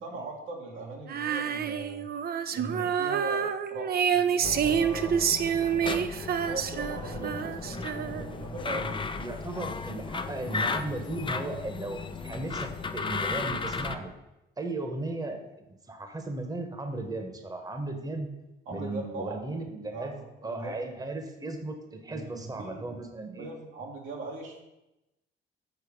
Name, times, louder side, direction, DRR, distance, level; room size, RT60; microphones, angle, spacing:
voice 1, 0.0-2.1 2.5-5.3 6.3-9.0 18.7-19.4 19.9-20.7 22.1-22.8 23.4-24.6, right 3 dB, 90° right, -1 dB, 2.0 m, -40 dB
Female singing, 1.1-8.4, right 8 dB, 50° right, 0.5 m, -28 dB
sound 1, 4.4-14.0, left 4 dB, 25° left, 0.5 m, -35 dB
voice 2, 8.6-14.1 14.6-18.3 18.7-20.1 20.4-23.5, right 2 dB, 20° right, 6 dB, 1.1 m, -36 dB
7.0 x 4.6 x 6.1 m, 0.94 s
cardioid pair, 90°, 20 cm